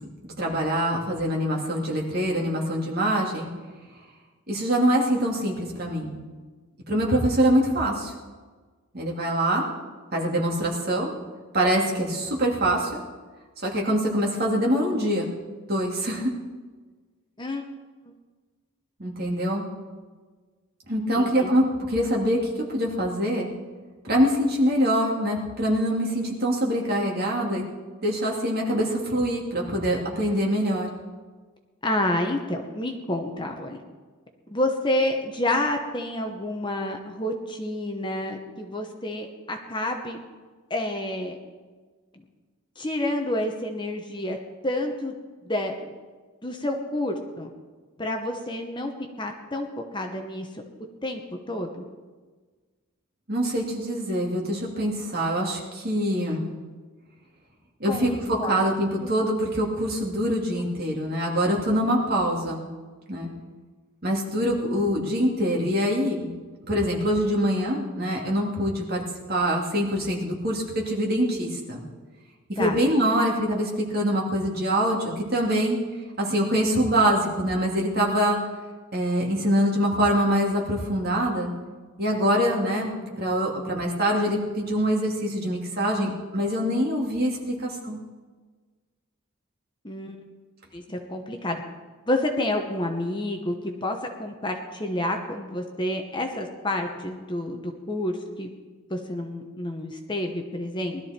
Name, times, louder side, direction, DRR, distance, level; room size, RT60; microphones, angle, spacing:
voice 1, 0.4-3.5 4.5-6.1 6.9-8.1 8.9-9.7 10.1-11.1 11.5-13.0 13.6-15.3 15.7-16.3 19.0-19.7 20.9-23.5 24.0-27.6 28.0-30.9 53.3-56.5 57.8-62.6 63.1-63.3 64.0-66.4 66.7-69.0 69.3-71.8 72.6-75.8 76.2-78.4 78.9-81.5 82.0-88.0, equal, 45° right, -1 dB, 2.7 m, -24 dB
voice 2, 21.1-21.5 31.8-33.8 34.5-40.2 40.7-41.4 42.1-42.2 42.8-44.4 44.6-45.1 45.4-45.9 46.4-47.5 48.0-48.9 49.2-50.5 51.0-51.2 51.5-51.9 57.8-58.6 59.0-59.1 72.6-72.8 89.8-90.2 90.7-91.6 92.1-93.5 93.8-98.5 98.9-101.0, left 1 dB, 20° left, 4 dB, 1.1 m, -29 dB
20.0 x 12.5 x 4.4 m, 1.4 s
head